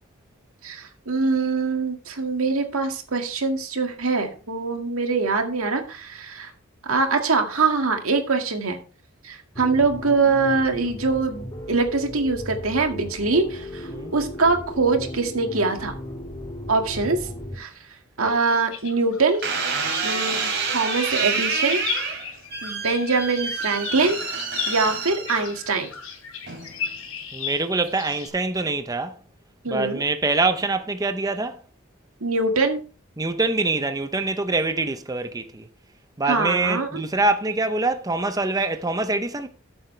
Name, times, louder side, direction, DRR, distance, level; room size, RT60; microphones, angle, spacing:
voice 1, 0.6-6.5 6.9-8.8 9.2-15.9 16.7-17.3 17.6-17.7 18.2-19.4 20.0-21.8 22.6-24.2 24.7-25.9 29.6-30.0 32.2-32.8 36.3-37.0, right 3 dB, 85° right, 2.0 m, -23 dB
sound 1, 9.5-17.5, left 1 dB, 25° left, 3.7 m, -36 dB
sound 2, 18.4-28.3, left 7 dB, 90° left, 3.1 m, -35 dB
sound 3, 19.4-25.8 26.5-26.9, right 5 dB, 55° right, 2.9 m, -28 dB
voice 2, 27.3-29.2 29.7-31.6 33.2-35.7 36.2-39.5, right 3 dB, 15° right, 0.6 m, -24 dB
13.5 x 7.7 x 3.3 m
head